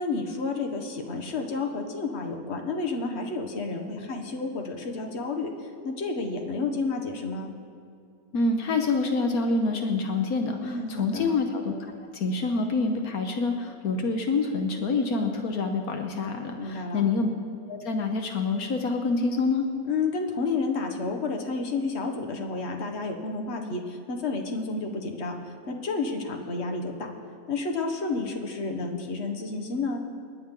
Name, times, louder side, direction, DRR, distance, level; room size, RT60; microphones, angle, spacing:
voice 1, 0.0-7.5 10.6-11.3 16.6-17.0 19.9-26.9 27.5-30.0, left 3 dB, 45° left, 3 dB, 1.5 m, -30 dB
voice 2, 8.3-11.7 12.1-17.3 17.7-19.7, left 3 dB, 75° left, 4 dB, 1.4 m, -26 dB
28.0 x 9.7 x 3.8 m, 2.3 s
omnidirectional pair, 1.6 m